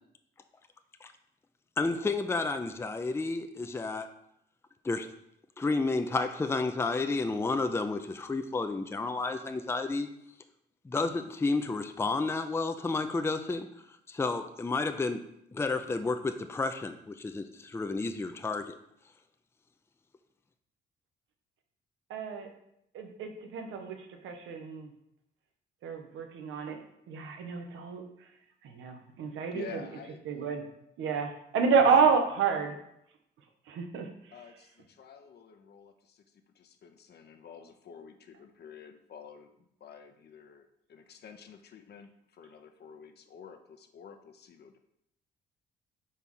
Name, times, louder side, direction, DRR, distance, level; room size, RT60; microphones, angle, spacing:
voice 1, 1.8-4.1 4.8-5.1 5.6-10.1 10.8-13.7 14.1-15.2 15.5-18.8, left 3 dB, 10° left, 7 dB, 0.4 m, -31 dB
voice 2, 22.1-22.5 22.9-24.0 24.2-24.9 25.8-26.8 27.1-28.0 28.7-29.9 30.2-30.6 31.0-32.7 33.7-34.1, right 5 dB, 85° right, 5 dB, 1.0 m, -29 dB
voice 3, 29.5-30.2 31.6-31.7 34.3-34.7 35.0-35.9 36.6-39.5 39.8-40.6 40.9-42.1 42.4-44.8, left 7 dB, 55° left, 6 dB, 0.7 m, -49 dB
4.7 x 4.3 x 5.4 m, 0.77 s
cardioid pair, 90°, 20 cm